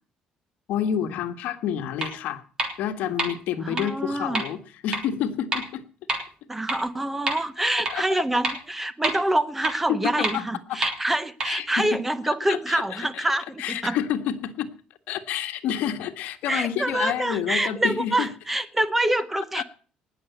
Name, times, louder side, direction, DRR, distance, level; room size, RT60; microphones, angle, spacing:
voice 1, 0.7-2.4 2.8-5.8 7.7-8.2 9.9-10.4 10.7-10.8 11.4-12.0 12.3-13.2 13.6-14.7 15.1-18.3 19.5-19.6, left 9 dB, 70° left, 1.6 m, -29 dB
sound 1, 2.0-2.1 2.6-2.7 3.2-3.3 3.8-3.9 4.3-4.4 4.9-5.0 5.5-5.6 6.1-6.2 6.7-6.8 7.3-7.4 7.8-7.9 8.4-8.5 9.0-9.1 9.6-9.7 10.2-10.3 10.8-10.9 11.4-11.5, right 2 dB, 25° right, 3.3 m, -25 dB
voice 2, 3.6-4.4 6.5-14.0 16.5-19.6, right 1 dB, 10° right, 0.8 m, -26 dB
19.0 x 7.1 x 8.2 m
cardioid pair, 175°, 3 cm